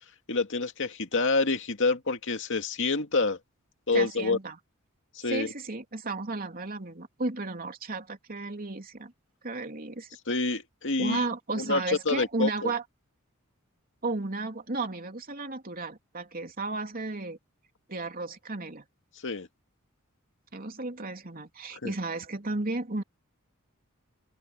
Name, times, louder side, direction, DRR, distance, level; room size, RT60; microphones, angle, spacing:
voice 1, 0.3-3.4 3.9-4.4 5.2-5.5 10.3-11.2 11.6-12.7 19.2-19.5 21.8-21.9, left 3 dB, 60° left, 2.4 m, -27 dB
voice 2, 3.9-4.6 5.3-9.1 9.4-10.1 11.0-12.8 14.0-17.4 17.9-18.8 20.5-23.0, right 3 dB, 40° right, 3.2 m, -33 dB
head